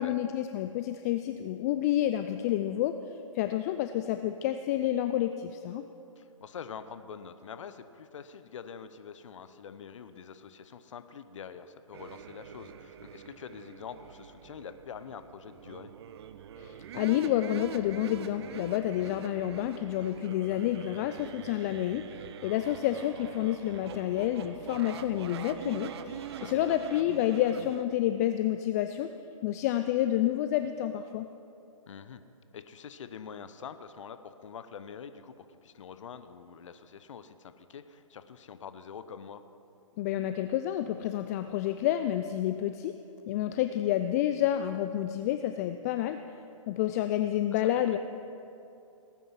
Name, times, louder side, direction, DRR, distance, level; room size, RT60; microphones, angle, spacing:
voice 1, 0.0-3.0 3.3-5.8 16.6-29.1 29.4-31.3 40.0-42.9 43.3-46.2 46.7-48.0, left 12 dB, 30° left, 9 dB, 0.4 m, -29 dB
voice 2, 6.2-15.9 26.3-26.8 31.9-32.2 32.5-39.4 47.5-47.6, left 7 dB, 65° left, 11 dB, 0.8 m, -45 dB
sound 1, 11.9-27.8, right 8 dB, 50° right, 0.7 m, -44 dB
18.5 x 9.2 x 5.8 m, 2.7 s
hypercardioid pair, 130°, 17 cm